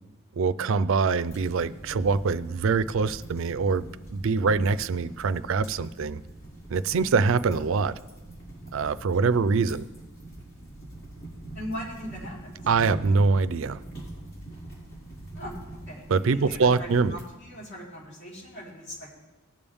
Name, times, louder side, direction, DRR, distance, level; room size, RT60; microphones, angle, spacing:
voice 1, 0.4-6.2 6.7-7.9 8.7-9.9 12.7-13.8 16.1-17.2, right 4 dB, 60° right, 13 dB, 0.4 m, -24 dB
sound 1, 1.2-17.2, right 1 dB, 75° left, 4.5 m, -43 dB
voice 2, 11.5-12.6 15.3-15.6 15.9-16.1 16.3-19.2, equal, 55° left, -6 dB, 4.3 m, -39 dB
19.0 x 7.0 x 3.5 m, 1.1 s
head